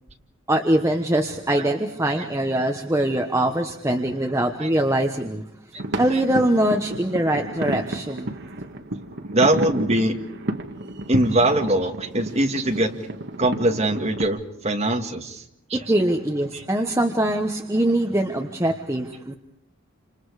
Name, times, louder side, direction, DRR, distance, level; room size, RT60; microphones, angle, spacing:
voice 1, 0.5-5.4 5.9-8.3 15.7-19.4, right 1 dB, 15° right, 3 dB, 1.1 m, -23 dB
sound 1, 5.8-14.2, right 1 dB, 50° right, 1.5 m, -31 dB
voice 2, 9.3-10.1 11.1-13.1 13.4-15.4 15.7-15.8 16.5-16.6, right 1 dB, 30° right, 3 dB, 2.0 m, -22 dB
29.0 x 27.0 x 4.9 m, 0.78 s
head